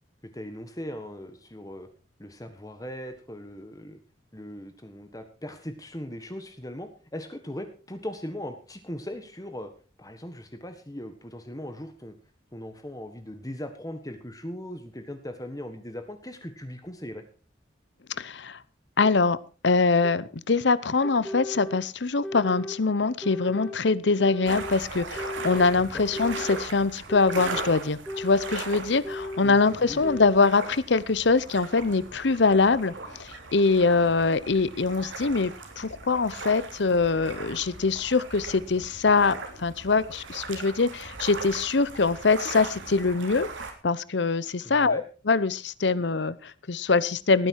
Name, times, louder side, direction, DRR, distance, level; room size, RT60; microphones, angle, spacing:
voice 1, 0.3-1.9 2.2-4.0 4.3-9.7 10.0-12.1 12.5-17.2 25.7-26.0 29.4-30.2 44.6-45.0, left 1 dB, 20° left, 8 dB, 1.4 m, -39 dB
voice 2, 18.2-18.6 19.0-19.4 19.6-43.5 43.8-47.5, left 4 dB, 70° left, 18 dB, 0.8 m, -23 dB
sound 1, 19.0-19.1 20.0-20.1 21.0-21.8 22.2-22.8 23.2-23.8 24.2-24.7 25.2-25.7 26.1-26.7 27.1-27.7 28.1-28.6 29.0-29.6 30.0-30.6, left 1 dB, 5° left, 1.7 m, -36 dB
sound 2, 24.5-43.7, right 3 dB, 90° right, 3.3 m, -39 dB
18.0 x 10.0 x 4.7 m, 0.36 s
head